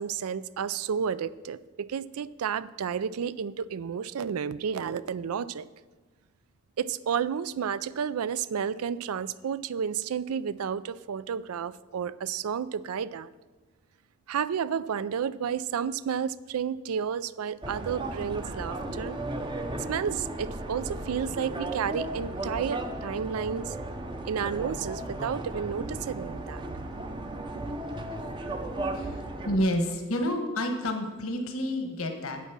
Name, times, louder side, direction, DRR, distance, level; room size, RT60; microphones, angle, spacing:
voice 1, 0.0-5.7 6.8-13.3 14.3-19.2 19.9-23.8 24.3-26.8 27.7-27.8, right 7 dB, 90° right, 17 dB, 0.4 m, -31 dB
sound 1, 17.6-29.6, right 1 dB, 20° right, 0.6 m, -35 dB
voice 2, 28.9-32.4, left 1 dB, 80° left, 5 dB, 1.2 m, -29 dB
8.4 x 8.3 x 6.0 m, 1.3 s
head